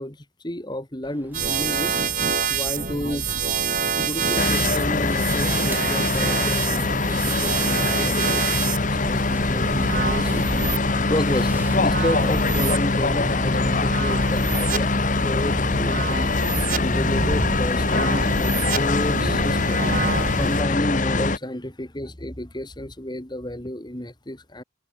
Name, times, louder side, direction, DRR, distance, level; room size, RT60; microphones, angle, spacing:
voice 1, 0.0-3.3 4.0-16.3 16.8-19.9 20.4-24.6, left 1 dB, 20° left, 2.2 m, -31 dB
sound 1, 1.0-13.2, right 2 dB, 10° right, 5.0 m, -44 dB
sound 2, 1.3-20.6, right 5 dB, 40° right, 2.2 m, -28 dB
sound 3, 4.4-21.4, left 3 dB, 40° left, 1.2 m, -23 dB
head